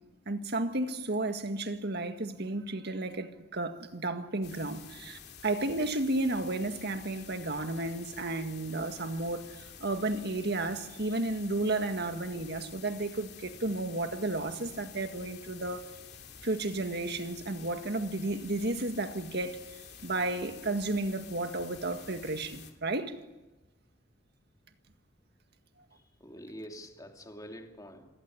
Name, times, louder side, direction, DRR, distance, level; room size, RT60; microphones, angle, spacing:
voice 1, 0.3-15.8 16.4-19.6 20.0-23.2, right 2 dB, 60° right, 1.9 m, -33 dB
sound 1, 4.4-22.7, left 7 dB, 60° left, 2.9 m, -50 dB
voice 2, 25.9-28.1, equal, 20° left, 2.9 m, -46 dB
27.0 x 16.5 x 9.7 m
head